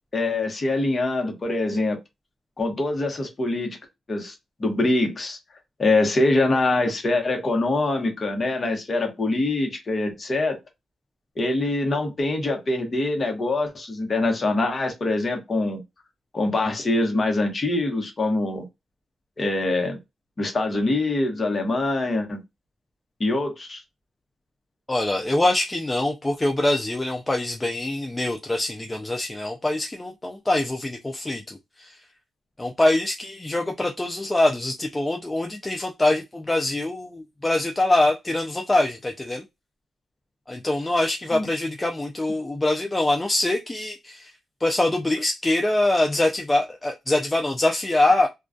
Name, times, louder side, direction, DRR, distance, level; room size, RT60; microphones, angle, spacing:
voice 1, 0.1-2.0 2.6-3.8 4.1-4.3 4.6-5.4 5.8-10.6 11.4-15.8 16.3-18.6 19.4-20.0 20.4-22.4 23.2-23.8 41.3-41.5, left 2 dB, 35° left, 0.9 m, -24 dB
voice 2, 24.9-32.0 32.6-39.4 40.5-44.3 44.6-48.3, left 2 dB, 15° left, 0.3 m, -24 dB
2.2 x 2.2 x 2.5 m
cardioid pair, 95°, 0 cm